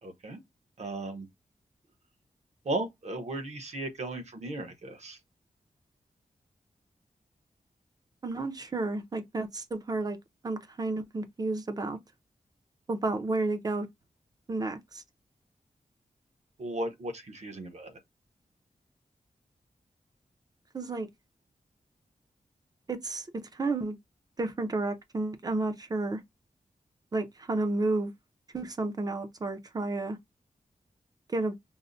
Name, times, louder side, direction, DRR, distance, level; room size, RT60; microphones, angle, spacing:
voice 1, 0.0-0.4 0.8-1.3 2.6-5.2 16.6-18.0, right 2 dB, 55° right, 0.9 m, -36 dB
voice 2, 8.2-10.2 10.4-12.0 12.9-13.9 14.5-15.0 20.7-21.1 22.9-23.3 23.5-24.0 24.4-26.2 27.1-28.1 28.5-30.2 31.3-31.5, right 2 dB, 30° right, 0.6 m, -31 dB
5.4 x 2.1 x 2.5 m
wide cardioid pair, 170°, 14 cm